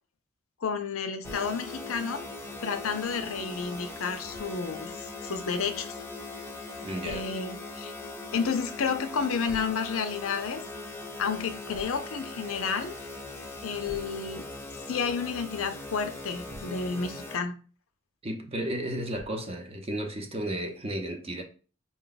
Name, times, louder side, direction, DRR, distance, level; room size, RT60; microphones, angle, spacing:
voice 1, 0.6-2.2 2.6-4.9 5.2-5.9 7.0-7.9 8.3-10.6 11.2-12.9 13.6-14.5 14.9-17.6, left 5 dB, 80° left, 0.5 m, -31 dB
sound 1, 1.2-17.4, left 2 dB, 10° left, 0.6 m, -40 dB
Thump thud, 1.2-1.5 4.3-4.5 7.1-7.3 9.5-9.8 11.7-12.0 13.8-14.2 16.2-16.8 19.1-19.5, equal, 85° right, 1.3 m, -47 dB
voice 2, 6.8-7.2 18.2-21.4, right 1 dB, 30° right, 0.7 m, -33 dB
4.2 x 2.2 x 3.9 m
head